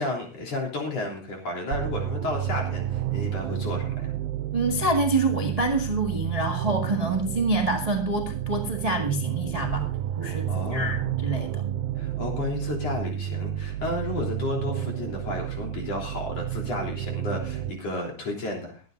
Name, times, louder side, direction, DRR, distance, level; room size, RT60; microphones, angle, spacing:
voice 1, 0.0-4.1 10.5-11.0 12.0-18.8, left 2 dB, 55° left, 0 dB, 4.5 m, -32 dB
sound 1, 1.7-17.7, right 11 dB, 85° right, 2.1 m, -31 dB
voice 2, 4.5-9.9 10.2-11.6, right 2 dB, 15° right, 1 dB, 1.3 m, -26 dB
23.0 x 9.6 x 2.6 m, 0.37 s
omnidirectional pair, 3.4 m